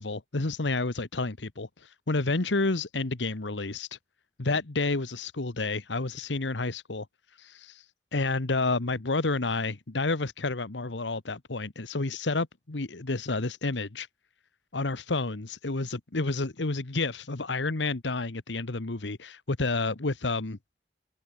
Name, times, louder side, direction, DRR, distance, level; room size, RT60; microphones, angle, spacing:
voice 1, 0.0-4.0 4.4-7.1 7.4-7.8 8.1-14.1 14.7-20.6, left 3 dB, 90° left, 1.3 m, -30 dB
open air
head